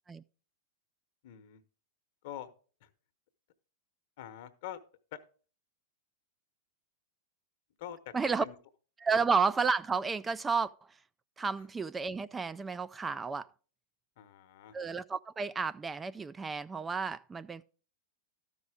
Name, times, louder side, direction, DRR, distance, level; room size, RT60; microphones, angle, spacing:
voice 1, 1.2-1.6 2.2-2.5 2.8-2.9 4.2-4.8 5.1-5.2 7.8-8.1 8.4-8.6 14.2-14.7, left 11 dB, 60° left, 1.0 m, -44 dB
voice 2, 8.1-8.4 9.0-10.7 11.4-13.5 14.7-17.6, right 5 dB, 15° right, 0.3 m, -31 dB
12.5 x 5.4 x 4.8 m
hypercardioid pair, 105°, 0 cm